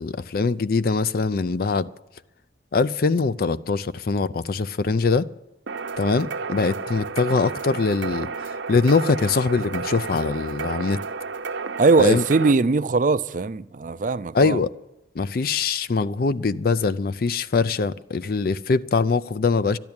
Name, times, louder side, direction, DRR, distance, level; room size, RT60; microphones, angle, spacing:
voice 1, 0.0-1.9 2.7-5.3 6.0-8.3 8.7-11.0 12.0-12.2 14.3-14.7 15.2-19.8, left 4 dB, 50° left, 0.4 m, -22 dB
sound 1, 5.7-12.5, right 4 dB, 75° right, 0.8 m, -32 dB
voice 2, 11.8-14.6, right 3 dB, 40° right, 0.4 m, -20 dB
12.5 x 10.5 x 8.8 m
head